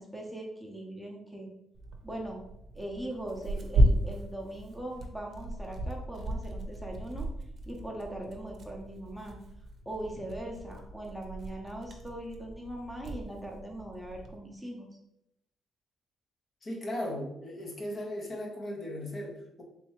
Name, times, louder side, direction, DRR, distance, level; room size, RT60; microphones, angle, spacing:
voice 1, 0.0-1.5 2.0-2.4 2.7-7.3 7.6-9.4 9.8-14.9, right 1 dB, 5° left, 0 dB, 0.9 m, -40 dB
Tearing, 1.7-14.4, right 1 dB, 55° right, 0.6 m, -34 dB
voice 2, 16.6-19.6, left 1 dB, 45° left, -1 dB, 1.0 m, -37 dB
3.4 x 3.0 x 3.2 m, 0.83 s
cardioid pair, 90°, 0 cm